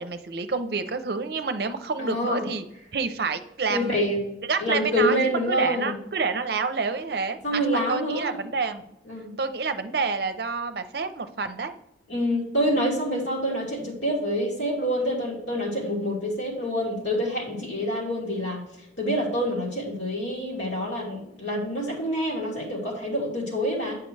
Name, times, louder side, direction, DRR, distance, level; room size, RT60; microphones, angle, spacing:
voice 1, 0.0-2.6 2.9-4.1 4.5-5.2 5.5-8.8 9.4-11.7, right 4 dB, 55° right, 9 dB, 0.6 m, -28 dB
voice 2, 2.0-2.4 3.7-4.2 4.6-6.0 7.4-8.4 9.1-9.3 12.1-18.6 19.0-24.0, equal, 80° left, -3 dB, 2.5 m, -27 dB
9.1 x 5.8 x 3.2 m, 0.83 s
head